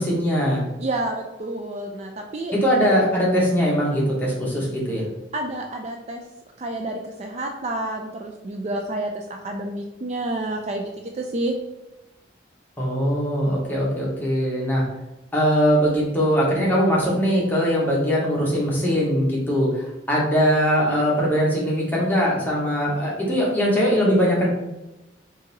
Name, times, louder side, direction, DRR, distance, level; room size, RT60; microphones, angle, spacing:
voice 1, 0.0-0.6 2.5-5.0 12.8-14.8 15.3-24.5, equal, 10° left, -5 dB, 1.0 m, -21 dB
voice 2, 0.8-2.5 5.3-6.2 6.6-6.9 7.2-11.5, right 1 dB, 35° right, 3 dB, 0.3 m, -29 dB
3.9 x 2.6 x 3.9 m, 0.97 s
head